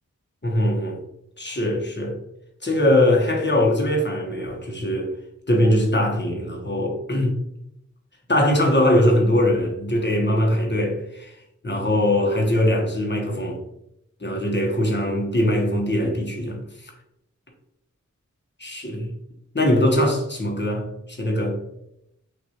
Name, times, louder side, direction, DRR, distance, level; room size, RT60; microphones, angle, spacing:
voice 1, 0.4-1.0 1.4-2.1 2.6-5.1 5.5-7.3 8.3-11.3 11.6-13.6 14.2-16.6 18.6-19.1 19.5-21.6, left 1 dB, 35° left, 0 dB, 1.1 m, -21 dB
6.2 x 2.6 x 2.9 m, 0.80 s
wide cardioid pair, 65°, 31 cm